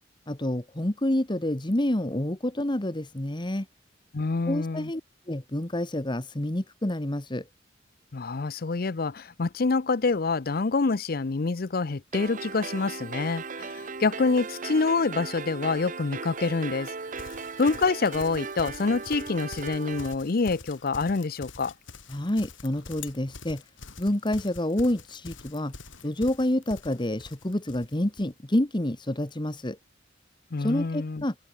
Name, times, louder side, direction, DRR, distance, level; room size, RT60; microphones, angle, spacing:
voice 1, 0.3-3.7 4.4-5.0 5.3-7.5 22.1-23.6 24.0-25.7 26.0-29.8 30.6-31.3, left 1 dB, 25° left, 1.4 m, -28 dB
voice 2, 4.1-4.9 8.1-16.9 17.6-21.7 30.5-31.2, left 4 dB, 50° left, 0.6 m, -26 dB
sound 1, 12.1-20.1, right 4 dB, 40° right, 1.0 m, -37 dB
Livestock farm animals working animals, 17.1-28.3, left 3 dB, 80° left, 4.1 m, -45 dB
open air
head